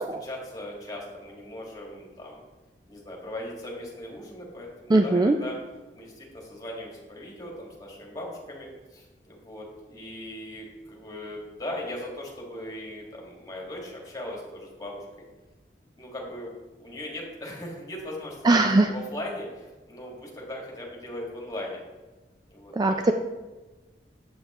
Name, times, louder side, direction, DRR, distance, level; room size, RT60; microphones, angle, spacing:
voice 1, 0.2-2.4 2.9-5.6 5.9-15.0 16.0-21.8 22.5-23.1, left 1 dB, 20° left, -2 dB, 1.8 m, -39 dB
voice 2, 4.9-5.4 18.4-18.9 22.8-23.1, right 2 dB, 20° right, 5 dB, 0.3 m, -20 dB
7.8 x 7.4 x 3.0 m, 1.2 s
head